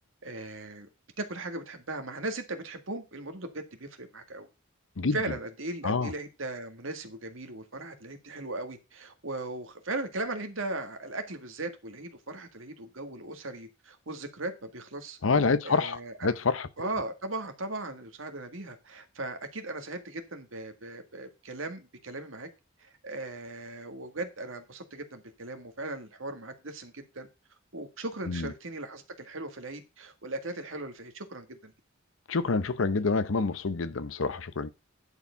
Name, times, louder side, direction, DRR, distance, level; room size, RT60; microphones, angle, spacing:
voice 1, 0.2-0.9 1.2-4.5 5.1-15.2 15.6-16.4 16.8-22.5 22.8-27.3 27.7-31.7, right 2 dB, 70° right, 1.8 m, -38 dB
voice 2, 15.2-16.9 28.3-28.5 32.3-34.7, left 4 dB, 70° left, 0.7 m, -27 dB
11.0 x 4.7 x 5.7 m
head